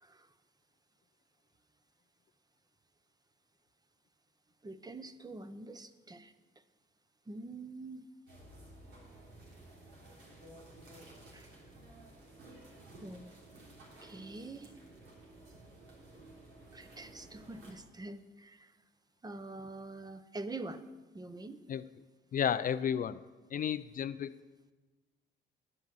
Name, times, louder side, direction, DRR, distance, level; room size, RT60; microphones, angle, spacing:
voice 1, 4.6-6.3 7.3-8.0 11.3-11.5 13.0-13.3 14.0-14.7 16.7-18.7 19.2-20.9 21.1-21.6, right 2 dB, 20° right, 11 dB, 0.7 m, -45 dB
sound 1, 8.3-17.7, right 1 dB, 85° right, 3.4 m, -54 dB
voice 2, 22.3-23.2 23.5-24.4, left 8 dB, 45° left, 14 dB, 0.4 m, -32 dB
9.7 x 7.9 x 7.7 m, 1.3 s
cardioid pair, 90°, 20 cm